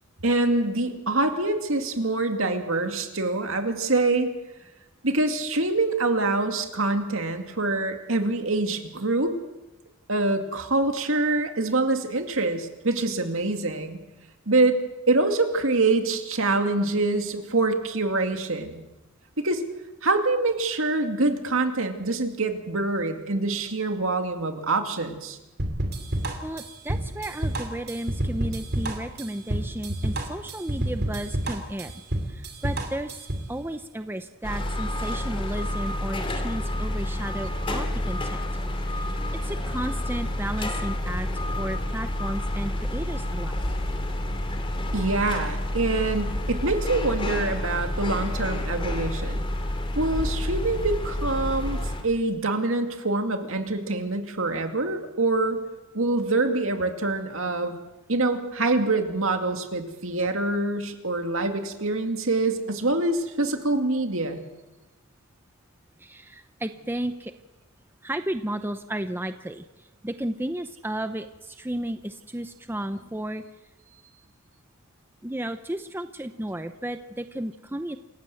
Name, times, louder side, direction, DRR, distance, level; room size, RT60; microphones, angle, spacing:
voice 1, 0.2-4.3 5.0-9.3 10.1-14.0 14.5-14.8 15.1-18.8 19.4-19.6 20.0-25.4 44.9-49.5 50.0-55.6 55.9-57.8 58.1-64.4, right 2 dB, 65° right, 5 dB, 2.5 m, -25 dB
sound 1, 25.6-33.5, right 1 dB, 50° right, 3.3 m, -29 dB
voice 2, 26.4-31.9 32.3-38.4 38.9-43.8 60.2-60.3 66.0-67.3 68.0-73.4 75.2-78.0, right 1 dB, 10° right, 9 dB, 0.7 m, -33 dB
sound 2, 34.4-52.0, left 1 dB, 25° left, 2.6 m, -29 dB
27.5 x 15.5 x 7.9 m, 1.0 s
head